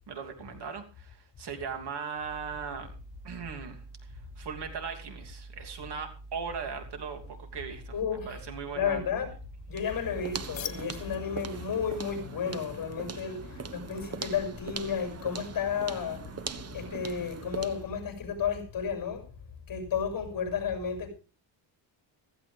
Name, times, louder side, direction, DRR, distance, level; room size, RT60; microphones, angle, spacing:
voice 1, 0.1-2.9 3.2-3.8 4.1-7.9 8.3-9.0, right 6 dB, 60° right, 3.0 m, -38 dB
sound 1, 2.2-11.2, right 3 dB, 5° left, 3.4 m, -48 dB
voice 2, 7.9-8.4 8.7-9.3 9.7-16.3 16.7-19.2 19.7-21.1, left 7 dB, 45° left, 6.2 m, -32 dB
sound 2, 9.7-17.9, right 5 dB, 35° right, 1.2 m, -41 dB
sound 3, 10.5-16.1, left 10 dB, 80° left, 1.9 m, -48 dB
15.5 x 15.0 x 3.4 m
cardioid pair, 130°, 45 cm